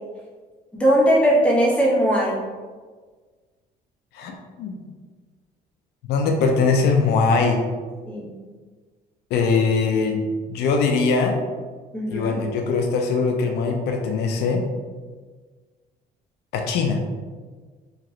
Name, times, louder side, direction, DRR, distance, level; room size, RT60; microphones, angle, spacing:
voice 1, 0.7-2.4 8.1-8.3 11.9-12.4, equal, 5° left, -6 dB, 1.0 m, -19 dB
voice 2, 4.1-4.7 6.1-7.6 9.3-11.4 12.1-14.6 16.5-17.0, left 4 dB, 75° left, 2 dB, 0.4 m, -21 dB
2.8 x 2.5 x 3.0 m, 1.5 s
cardioid pair, 110°, 17 cm